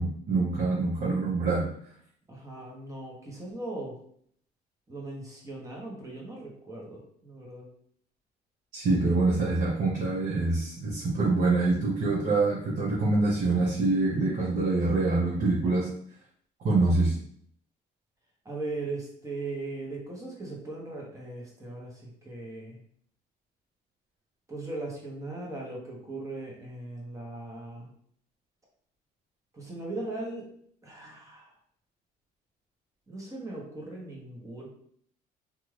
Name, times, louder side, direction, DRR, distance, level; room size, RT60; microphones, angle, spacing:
voice 1, 0.0-1.7 8.7-15.9 16.6-17.1, right 3 dB, 50° right, -7 dB, 0.9 m, -25 dB
voice 2, 2.3-4.0 4.9-7.7 18.4-22.8 24.5-27.9 29.5-30.5 30.8-31.5 33.1-34.7, right 2 dB, 20° right, -2 dB, 1.0 m, -38 dB
2.6 x 2.4 x 3.2 m, 0.64 s
cardioid pair, 110°, 17 cm